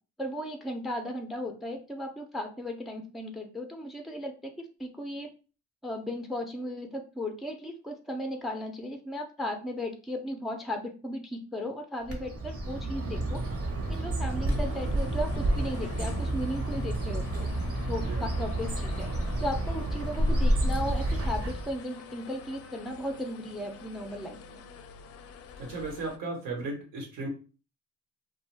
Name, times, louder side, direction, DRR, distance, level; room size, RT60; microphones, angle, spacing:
voice 1, 0.2-5.3 5.8-13.4 13.9-17.5 17.9-19.1 19.4-24.6, left 1 dB, ahead, 4 dB, 0.5 m, -36 dB
Bird, 12.1-21.8, right 1 dB, 50° right, 0.9 m, -30 dB
sound 1, 14.5-26.2, left 7 dB, 55° left, 0.4 m, -46 dB
voice 2, 25.6-27.3, right 3 dB, 85° right, 0 dB, 1.2 m, -35 dB
2.5 x 2.2 x 3.2 m, 0.35 s
cardioid pair, 90°, 30 cm